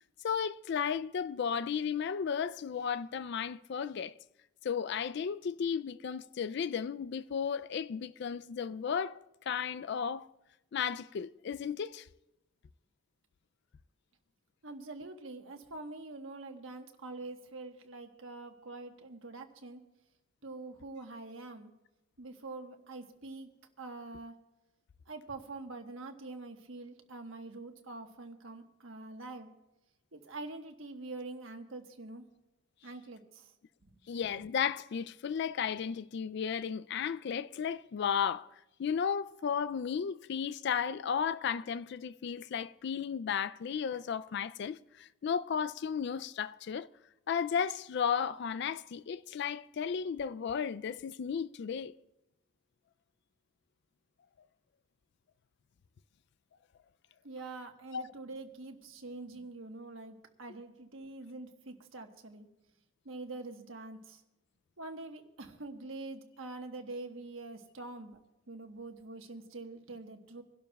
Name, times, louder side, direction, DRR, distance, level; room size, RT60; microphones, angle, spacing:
voice 1, 0.2-4.1 4.6-9.2 9.5-10.3 10.7-12.0 34.1-38.5 38.8-46.9 47.3-51.9 57.9-58.0, left 7 dB, 55° left, 0.3 m, -34 dB
voice 2, 14.6-19.8 20.4-21.7 22.2-23.5 23.8-24.3 25.1-29.5 30.1-32.2 32.8-33.4 57.2-62.5 63.0-64.2 64.8-68.2 68.5-70.4, right 2 dB, 80° right, 1.2 m, -45 dB
26.0 x 11.5 x 2.3 m
head